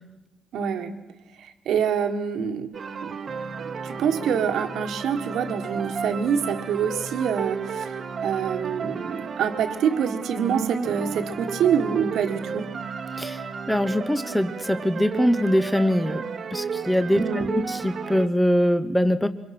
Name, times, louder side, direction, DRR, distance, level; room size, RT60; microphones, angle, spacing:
voice 1, 0.5-0.9 1.4-2.7 3.0-3.1 3.8-12.7 17.1-17.5, right 7 dB, 75° right, 7 dB, 1.6 m, -26 dB
sound 1, 2.7-18.3, right 6 dB, 50° right, 1.2 m, -33 dB
voice 2, 13.7-16.2 16.5-19.3, equal, 5° left, 10 dB, 0.9 m, -23 dB
24.5 x 23.0 x 6.0 m, 1.0 s
cardioid pair, 90°, 0 cm